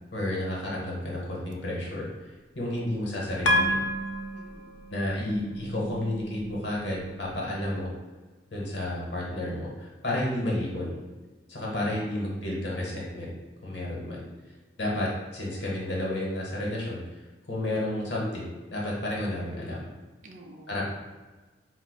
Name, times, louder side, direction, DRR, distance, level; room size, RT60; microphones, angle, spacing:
voice 1, 0.1-2.1 2.5-3.8 4.9-7.9 8.5-11.0 11.5-13.3 13.6-14.3 14.8-17.0 17.5-19.9 20.7-20.9, left 1 dB, 70° left, -4 dB, 0.9 m, -31 dB
sound 1, 3.4-7.9, equal, 90° left, 0.5 m, -31 dB
voice 2, 4.2-4.8 20.2-20.8, right 1 dB, 40° right, 2 dB, 0.4 m, -50 dB
4.8 x 2.1 x 2.3 m, 1.3 s
head